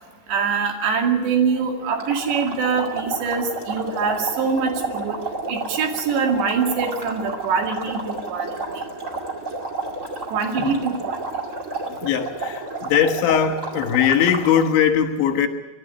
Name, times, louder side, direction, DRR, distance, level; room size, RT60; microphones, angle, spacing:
voice 1, 0.3-5.2 5.5-8.8 10.3-11.2, right 5 dB, 75° right, 2 dB, 4.5 m, -24 dB
sound 1, 1.9-14.7, right 3 dB, 30° right, 1.4 m, -31 dB
voice 2, 11.9-15.5, left 8 dB, 85° left, 6 dB, 3.7 m, -20 dB
24.5 x 11.5 x 9.6 m, 1.1 s
omnidirectional pair, 5.1 m